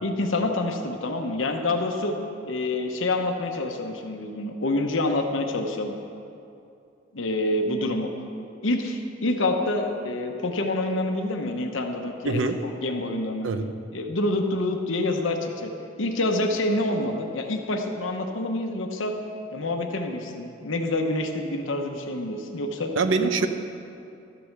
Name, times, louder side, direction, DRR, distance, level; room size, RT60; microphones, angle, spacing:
voice 1, 0.0-2.2 2.5-5.9 7.1-8.1 8.6-12.4 12.8-13.5 13.9-15.7 16.0-19.1 19.5-22.9, left 2 dB, 80° left, 3 dB, 1.0 m, -27 dB
voice 2, 12.2-12.6 13.4-13.7 23.0-23.5, right 3 dB, 75° right, 9 dB, 0.7 m, -23 dB
13.0 x 7.7 x 6.5 m, 2.6 s
head